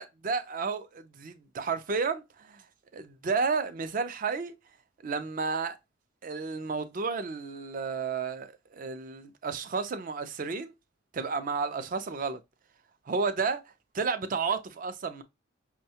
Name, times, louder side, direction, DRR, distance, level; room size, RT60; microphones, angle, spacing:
voice 1, 0.0-2.6 2.9-4.6 5.0-5.8 6.2-10.7 11.1-12.4 13.1-13.6 13.9-15.2, right 4 dB, 45° right, 0.4 m, -32 dB
5.4 x 2.1 x 2.8 m
head